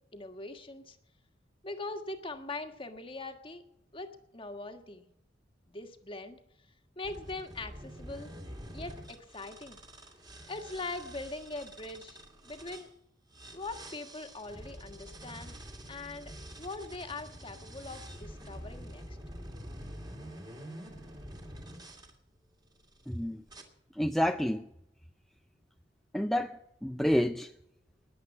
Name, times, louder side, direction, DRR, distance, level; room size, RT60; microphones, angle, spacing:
voice 1, 0.1-1.0 1.6-5.1 5.7-6.4 7.0-8.3 8.7-9.8 10.5-12.2 12.4-12.9 13.5-15.6 15.9-16.3 16.6-19.2, left 2 dB, 30° left, 1.6 m, -42 dB
sound 1, 7.0-12.9 13.3-22.1 22.8-23.1 23.5-23.6, equal, 25° right, 2.5 m, -47 dB
voice 2, 23.1-23.4 24.0-24.6 26.1-27.5, equal, ahead, 0.5 m, -29 dB
20.5 x 7.9 x 7.3 m
head